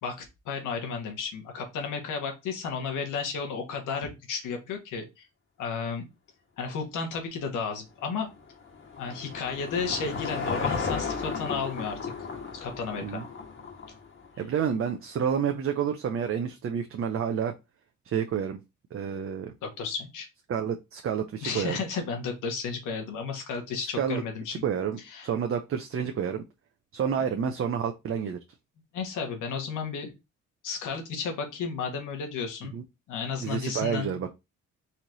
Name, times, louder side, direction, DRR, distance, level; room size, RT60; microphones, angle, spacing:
voice 1, 0.0-5.3 5.6-6.1 6.6-8.3 9.0-12.1 12.5-13.2 19.6-20.3 21.4-24.6 25.0-25.3 28.9-30.1 30.6-32.7 33.1-34.2, left 5 dB, 85° left, 4 dB, 1.6 m, -33 dB
Car passing by / Engine, 8.0-14.5, left 5 dB, 40° left, 1.5 m, -34 dB
voice 2, 14.4-17.5 18.0-18.6 18.9-19.5 20.5-21.8 24.0-24.2 24.6-26.4 26.9-28.4 32.7-32.8 33.4-34.3, right 7 dB, 45° right, 5 dB, 0.7 m, -29 dB
4.2 x 3.0 x 4.0 m, 0.23 s
cardioid pair, 90°, 30 cm